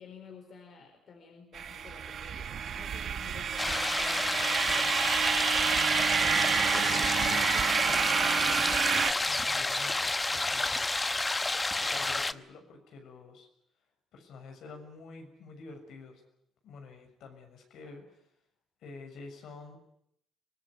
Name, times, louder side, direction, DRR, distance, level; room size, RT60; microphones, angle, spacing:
voice 1, 0.0-4.9, left 5 dB, 60° left, 4 dB, 4.6 m, -51 dB
sound 1, 1.5-9.1, right 8 dB, 60° right, 1.4 m, -29 dB
sound 2, 3.6-12.3, left 2 dB, 20° left, 1.0 m, -30 dB
voice 2, 6.2-10.8 11.6-13.5 14.1-16.2 16.6-18.2 18.8-19.8, left 4 dB, 75° left, 4 dB, 6.7 m, -48 dB
24.5 x 18.5 x 9.9 m, 0.75 s
cardioid pair, 90°, 0 cm